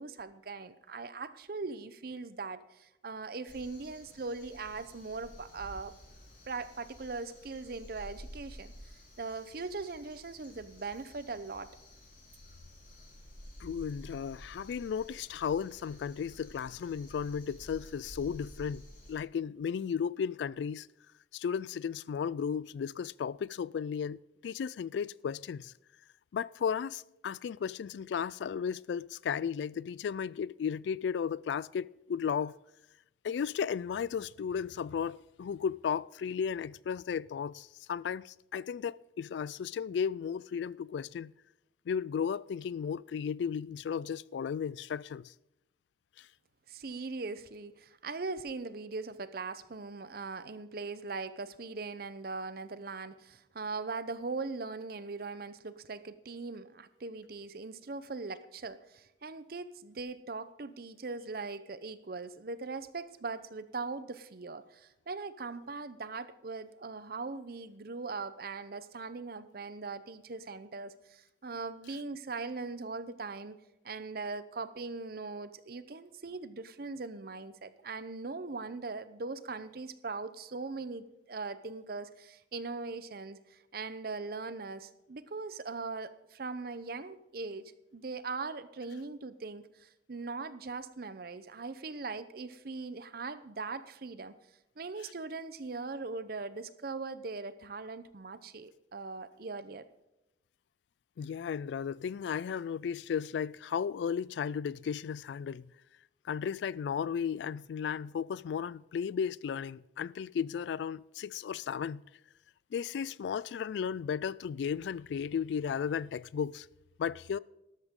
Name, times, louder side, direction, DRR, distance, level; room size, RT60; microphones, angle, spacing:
voice 1, 0.0-5.9 6.5-8.7 9.2-11.7 46.7-73.6 73.8-94.3 94.8-99.9, right 3 dB, 55° right, 0.7 m, -40 dB
Crow, 3.5-19.1, equal, 50° left, 5.1 m, -52 dB
voice 2, 13.6-18.8 19.1-20.9 21.3-25.7 26.3-32.6 33.2-41.3 41.9-45.3 46.2-46.3 101.2-105.7 106.2-112.1 112.7-116.7 117.0-117.4, left 7 dB, 75° left, 0.3 m, -34 dB
13.0 x 12.5 x 3.7 m
head